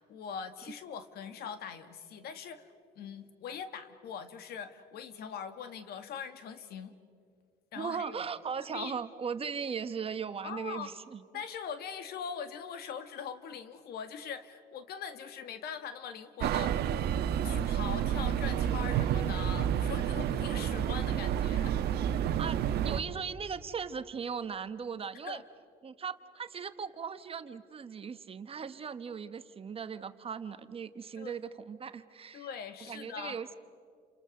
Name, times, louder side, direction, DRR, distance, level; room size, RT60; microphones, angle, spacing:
voice 1, 0.0-6.9 7.7-8.2 8.7-9.0 10.4-10.9 11.3-16.8 17.4-22.1 25.2-25.4 31.2-31.4 32.3-33.4, left 7 dB, 70° left, 10 dB, 2.0 m, -42 dB
voice 2, 7.8-11.2 22.4-25.4 25.8-32.5 32.9-33.6, right 6 dB, 35° right, 11 dB, 1.2 m, -38 dB
sound 1, 16.4-23.0, right 9 dB, 70° right, 1.3 m, -30 dB
30.0 x 27.5 x 6.6 m, 2.3 s
cardioid pair, 110°, 17 cm